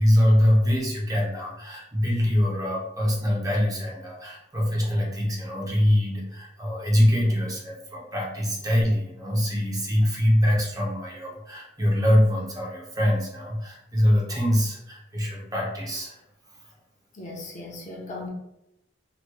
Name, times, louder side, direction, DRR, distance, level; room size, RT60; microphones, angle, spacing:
voice 1, 0.0-16.2, equal, 20° right, -3 dB, 0.7 m, -23 dB
voice 2, 17.1-18.3, left 2 dB, 45° left, -2 dB, 0.7 m, -37 dB
3.1 x 3.0 x 2.2 m, 0.85 s
head